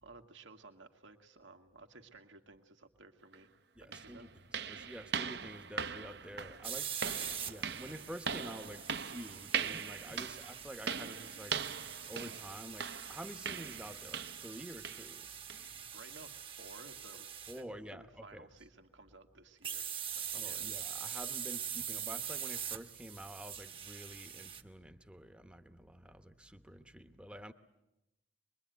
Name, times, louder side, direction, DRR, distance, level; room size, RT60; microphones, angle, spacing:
voice 1, 0.0-3.5 3.8-4.3 10.1-10.4 15.9-17.3 17.5-17.7 17.9-19.9 20.1-20.7, right 3 dB, 90° right, 5 dB, 2.1 m, -56 dB
sound 1, 3.3-3.4 3.9-14.6 14.8-15.1 15.5-15.7 16.2-16.3 16.8-16.9, right 6 dB, 60° right, 0.8 m, -41 dB
voice 2, 3.8-4.3 4.7-6.9 7.5-11.6 12.1-15.3 17.5-18.5 20.3-27.5, equal, 5° right, 8 dB, 0.9 m, -49 dB
sound 2, 6.6-17.6 19.6-24.6, right 8 dB, 30° right, 1.1 m, -43 dB
24.0 x 22.5 x 9.2 m, 0.92 s
head